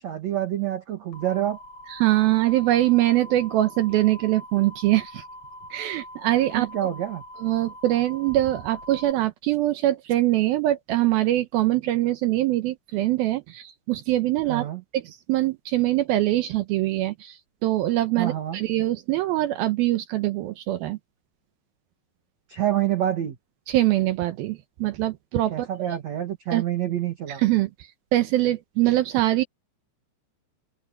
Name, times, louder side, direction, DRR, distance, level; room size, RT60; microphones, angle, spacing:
voice 1, 0.0-1.6 6.5-7.2 14.5-14.8 18.2-18.6 22.5-23.4 25.5-27.4, right 12 dB, 60° right, 1.9 m, -27 dB
sound 1, 1.1-9.1, left 1 dB, 40° left, 3.9 m, -43 dB
voice 2, 1.9-5.2 5.7-6.7 7.4-14.7 14.9-21.0 23.7-25.7 26.5-26.6 27.3-29.4, right 15 dB, 80° right, 2.2 m, -23 dB
open air
omnidirectional pair, 5.3 m